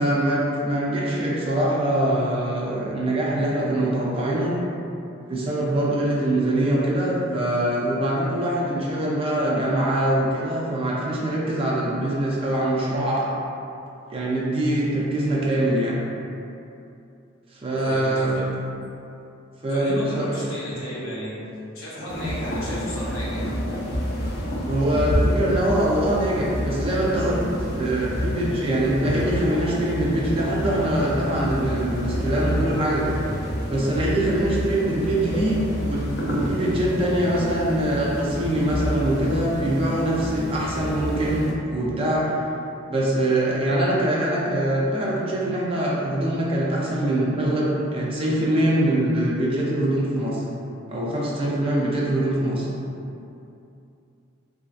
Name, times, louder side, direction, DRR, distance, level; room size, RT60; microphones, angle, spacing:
voice 1, 0.0-4.5 5.3-13.3 14.1-16.0 17.5-18.4 19.6-20.4 24.6-27.4 27.7-33.0 33.7-42.3 42.9-50.4 50.9-52.7, right 1 dB, 25° right, -5 dB, 0.4 m, -23 dB
voice 2, 17.8-18.4 19.7-21.3 21.7-23.5, equal, 85° left, -8 dB, 0.9 m, -33 dB
sound 1, 22.1-41.5, equal, 50° left, 0.4 m, -29 dB
3.1 x 2.6 x 2.4 m, 2.7 s
head